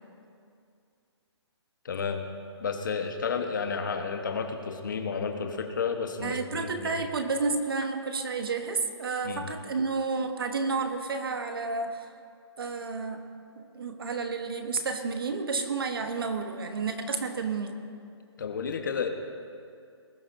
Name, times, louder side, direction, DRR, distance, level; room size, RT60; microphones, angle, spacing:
voice 1, 1.8-2.2 2.6-6.9 9.2-9.4 18.4-19.1, left 5 dB, 45° left, 5 dB, 1.2 m, -31 dB
voice 2, 6.2-12.1 12.6-13.2 13.6-17.8, right 4 dB, 55° right, 6 dB, 1.1 m, -31 dB
20.0 x 12.0 x 2.7 m, 2.4 s
hypercardioid pair, 175°, 15 cm